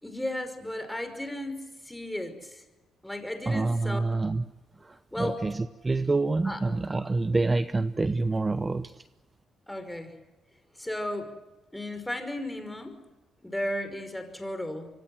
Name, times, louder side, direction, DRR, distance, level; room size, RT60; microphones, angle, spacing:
voice 1, 0.0-2.6 3.0-4.0 5.1-5.5 6.4-6.6 9.7-10.1 10.8-11.3 11.7-13.0 13.4-14.9, left 1 dB, 5° left, 8 dB, 5.5 m, -34 dB
voice 2, 3.5-4.4 4.8-9.0, right 3 dB, 25° right, 12 dB, 0.9 m, -27 dB
26.0 x 24.5 x 7.8 m, 1.1 s
cardioid pair, 90°, 0 cm